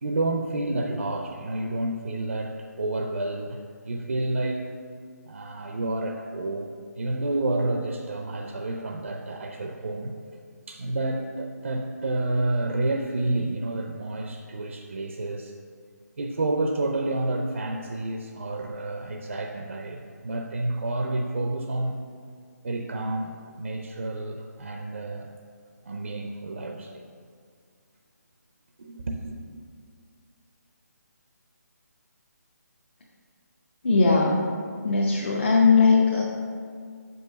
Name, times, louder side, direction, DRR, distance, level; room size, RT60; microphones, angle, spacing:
voice 1, 0.0-3.6 3.8-4.7 5.3-10.1 10.7-15.5 16.2-22.1 22.6-25.3 25.8-27.0 28.8-29.4, right 2 dB, 50° right, 3 dB, 0.6 m, -29 dB
voice 2, 33.8-34.4 34.8-36.2, left 4 dB, 40° left, -3 dB, 0.8 m, -19 dB
6.0 x 5.4 x 6.2 m, 2.1 s
hypercardioid pair, 175°, 9 cm